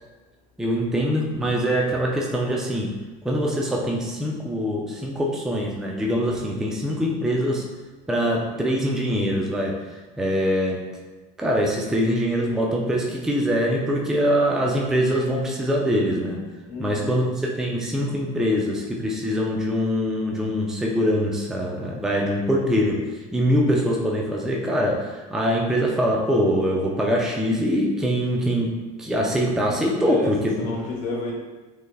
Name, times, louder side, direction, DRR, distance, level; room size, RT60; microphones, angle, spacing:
voice 1, 0.6-3.0 3.2-7.7 8.1-10.9 11.4-16.5 16.8-30.7, equal, 5° right, -1 dB, 0.4 m, -23 dB
voice 2, 16.7-17.2 30.0-31.3, left 2 dB, 80° left, -1 dB, 1.0 m, -31 dB
3.3 x 3.3 x 2.3 m, 1.2 s
supercardioid pair, 125°, 20 cm